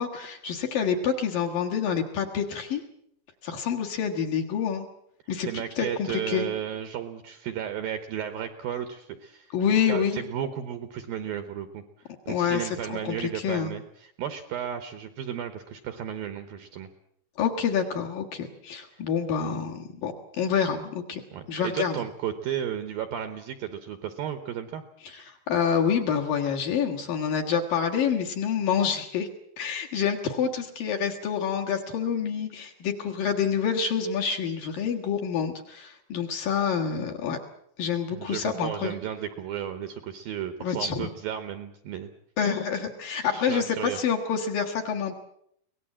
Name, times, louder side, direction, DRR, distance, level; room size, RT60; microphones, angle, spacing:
voice 1, 0.0-2.8 3.4-4.9 5.3-6.5 9.5-10.2 12.3-13.7 17.4-21.2 21.5-21.9 25.0-29.3 29.6-37.4 37.8-38.9 40.6-41.1 42.4-45.2, left 7 dB, 60° left, 3 dB, 2.6 m, -27 dB
voice 2, 5.4-11.8 12.3-16.9 21.3-24.8 38.1-42.1 43.2-44.0, right 9 dB, 75° right, 9 dB, 2.2 m, -34 dB
24.0 x 18.5 x 7.5 m, 0.72 s
omnidirectional pair, 5.4 m